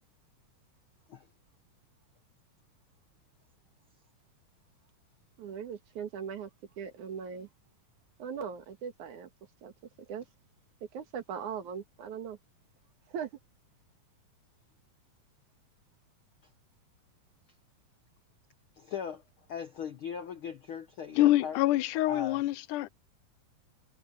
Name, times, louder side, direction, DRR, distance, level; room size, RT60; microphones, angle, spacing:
voice 1, 5.4-6.5 6.8-7.5 8.2-9.3 9.6-9.7 10.1-10.2 10.9-12.4 13.1-13.3, right 7 dB, 70° right, 3.1 m, -39 dB
voice 2, 18.8-19.2 19.5-22.4, left 7 dB, 65° left, 1.3 m, -39 dB
voice 3, 21.2-22.9, left 15 dB, 80° left, 2.0 m, -26 dB
omnidirectional pair, 3.7 m